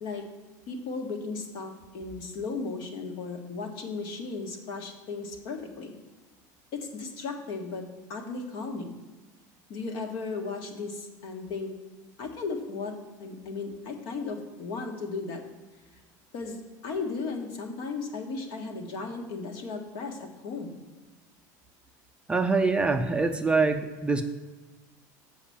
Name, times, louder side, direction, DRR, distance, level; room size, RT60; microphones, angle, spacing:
voice 1, 0.7-5.9 6.7-8.9 9.7-11.7 12.2-15.4 16.3-16.6 16.8-20.8, left 4 dB, 55° left, 3 dB, 1.6 m, -35 dB
voice 2, 22.3-24.2, right 3 dB, 10° right, 6 dB, 0.5 m, -24 dB
7.1 x 5.0 x 7.2 m, 1.2 s
supercardioid pair, 135°, 9 cm